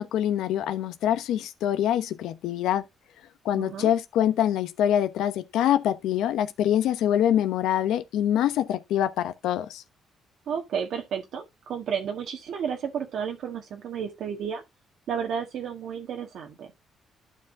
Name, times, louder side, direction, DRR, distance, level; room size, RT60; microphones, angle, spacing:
voice 1, 0.0-2.8 3.4-9.8, left 11 dB, 85° left, 0.9 m, -25 dB
voice 2, 3.5-3.9 10.5-14.6 15.1-16.7, right 7 dB, 70° right, 1.5 m, -32 dB
11.5 x 4.9 x 3.7 m
cardioid pair, 90°, 0 cm